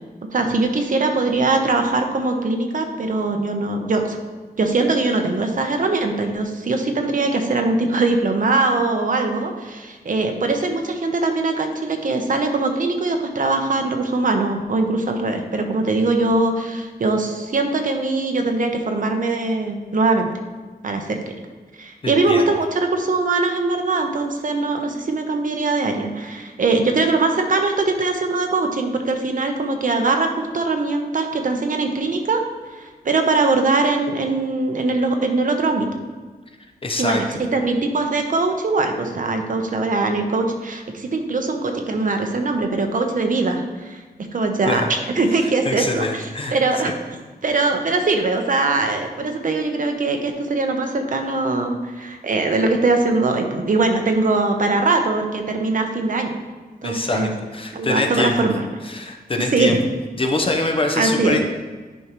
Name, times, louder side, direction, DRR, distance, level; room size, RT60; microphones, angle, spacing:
voice 1, 0.3-4.2 4.6-20.3 20.8-21.2 21.8-32.4 32.7-35.9 37.0-37.2 37.5-44.0 44.3-46.9 47.4-56.3 56.8-57.3 57.7-58.6 59.4-59.8 60.9-61.4, right 3 dB, 55° right, 4 dB, 0.8 m, -21 dB
voice 2, 22.0-22.4 36.8-37.2 44.7-44.9 45.6-46.6 46.8-46.9 56.8-58.3 58.8-59.8 60.2-61.4, left 2 dB, 35° left, 3 dB, 0.8 m, -24 dB
10.0 x 5.3 x 3.0 m, 1.3 s
wide cardioid pair, 135°, 16 cm